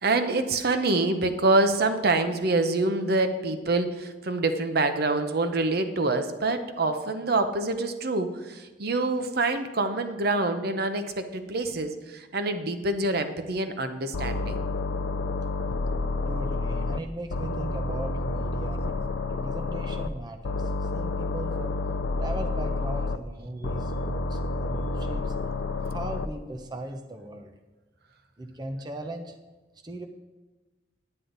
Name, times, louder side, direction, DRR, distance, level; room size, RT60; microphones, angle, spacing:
voice 1, 0.0-14.6, right 2 dB, 55° right, 8 dB, 0.7 m, -26 dB
sound 1, 14.1-17.0 17.3-20.1 20.4-23.2 23.6-26.3, left 3 dB, 85° left, 0.6 m, -29 dB
voice 2, 16.3-21.8 22.2-25.3 25.9-27.5 28.4-29.4 29.8-30.0, right 1 dB, 25° right, 4 dB, 0.7 m, -38 dB
9.7 x 9.6 x 3.9 m, 1.2 s
head